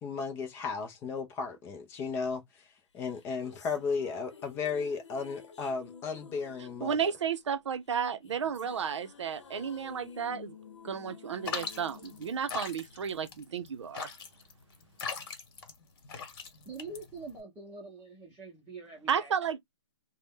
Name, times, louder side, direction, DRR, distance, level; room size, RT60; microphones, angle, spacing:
voice 1, 0.0-2.4 2.9-7.1, left 5 dB, 15° left, 0.4 m, -34 dB
sound 1, 3.0-13.4, left 6 dB, 80° left, 0.8 m, -52 dB
voice 2, 6.8-10.6 10.8-14.1 19.1-19.6, right 7 dB, 75° right, 0.6 m, -33 dB
sound 2, 11.4-17.4, left 5 dB, 50° left, 1.1 m, -40 dB
voice 3, 16.7-19.3, right 3 dB, 10° right, 0.8 m, -45 dB
2.6 x 2.1 x 3.5 m
hypercardioid pair, 150°, 15 cm